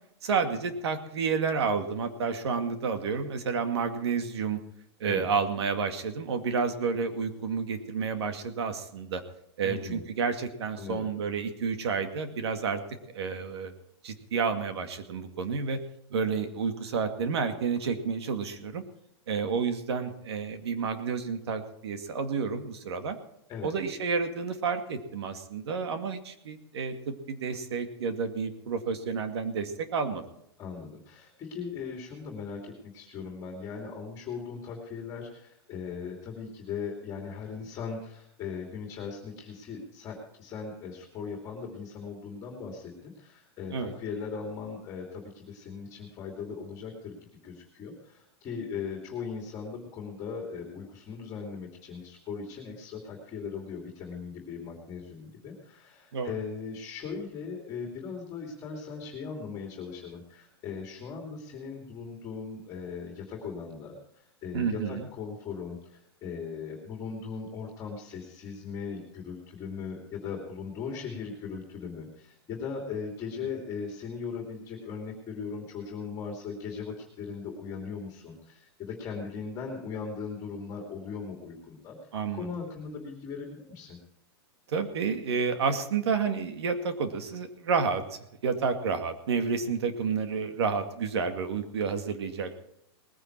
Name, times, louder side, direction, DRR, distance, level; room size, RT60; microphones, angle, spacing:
voice 1, 0.2-4.6 5.0-9.2 9.6-12.8 13.1-13.7 14.0-15.8 16.1-18.8 19.3-23.2 23.6-30.2 43.7-43.9 56.1-56.3 64.5-65.1 82.1-82.5 84.7-92.5, right 5 dB, 75° right, 7 dB, 2.2 m, -30 dB
voice 2, 9.6-10.0 10.8-11.1 23.5-23.7 30.6-47.2 47.4-84.0, left 5 dB, 20° left, 1 dB, 2.7 m, -39 dB
19.5 x 10.0 x 4.6 m, 0.78 s
supercardioid pair, 160°, 14 cm